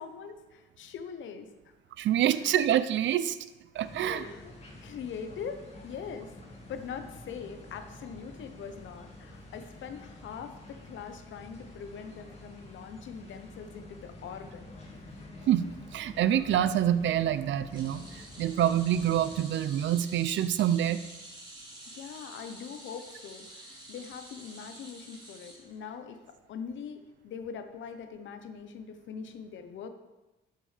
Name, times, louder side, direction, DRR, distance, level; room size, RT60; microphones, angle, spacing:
voice 1, 0.0-1.7 4.0-4.5 4.8-6.3 6.7-14.7 15.0-15.2 21.9-29.9, left 6 dB, 75° left, 8 dB, 1.0 m, -42 dB
voice 2, 2.0-3.4 3.7-4.2 15.5-15.7 15.9-18.0 18.4-21.0, right 11 dB, 70° right, 14 dB, 0.6 m, -26 dB
sound 1, 3.7-19.4, left 2 dB, 30° left, 2.5 m, -48 dB
sound 2, 17.7-26.2 26.5-26.8 27.9-28.0, right 1 dB, 20° right, 2.7 m, -49 dB
12.0 x 7.5 x 3.4 m, 1.1 s
cardioid pair, 90°, 20 cm